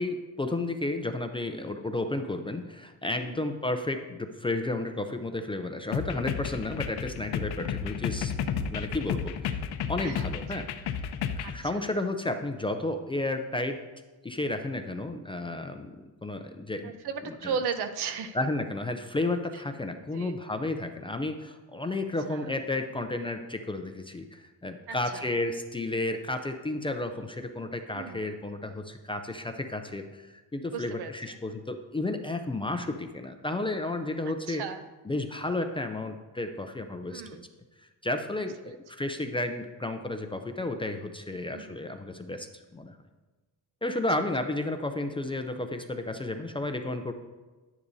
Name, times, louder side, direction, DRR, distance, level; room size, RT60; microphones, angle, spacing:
voice 1, 0.0-8.3 8.7-9.6 9.9-10.7 11.4-13.8 14.2-16.9 17.2-17.5 18.3-34.6 35.1-37.2 38.0-43.0 43.8-47.1, left 2 dB, 15° left, 6 dB, 0.4 m, -32 dB
sound 1, 5.9-11.6, left 7 dB, 75° left, 0.7 m, -32 dB
voice 2, 11.4-11.8 14.9-15.5 16.8-18.4 19.9-20.4 22.3-22.5 24.9-25.3 27.9-28.3 30.7-31.4 34.5-34.8 37.1-37.5 38.6-38.8 41.5-41.8, right 6 dB, 75° right, 9 dB, 0.9 m, -37 dB
10.5 x 10.0 x 2.7 m, 1.2 s
cardioid pair, 140°, 40 cm